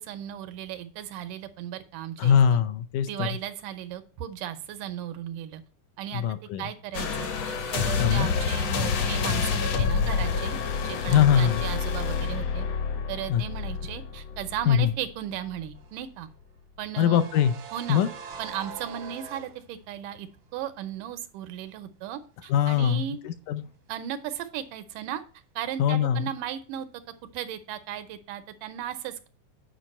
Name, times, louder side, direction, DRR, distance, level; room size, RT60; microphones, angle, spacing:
voice 1, 0.0-2.6 3.1-5.6 6.0-6.2 6.6-12.7 13.1-16.3 16.8-17.3 17.7-18.1 18.4-23.2 23.9-25.2 25.6-26.9 27.3-29.3, right 10 dB, 90° right, 10 dB, 2.4 m, -36 dB
voice 2, 2.2-3.3 6.1-6.7 8.0-8.3 11.1-11.6 13.3-13.4 14.7-14.9 17.0-17.5 17.9-18.1 22.5-23.6 25.8-26.3, left 8 dB, 80° left, 10 dB, 2.2 m, -22 dB
sound 1, 6.9-15.1 15.5-15.7, left 5 dB, 60° left, 2.1 m, -28 dB
sound 2, 15.7-20.2 20.4-20.6 22.7-23.2 23.4-23.6, right 6 dB, 65° right, 1.2 m, -43 dB
9.1 x 5.2 x 4.2 m, 0.38 s
omnidirectional pair, 3.7 m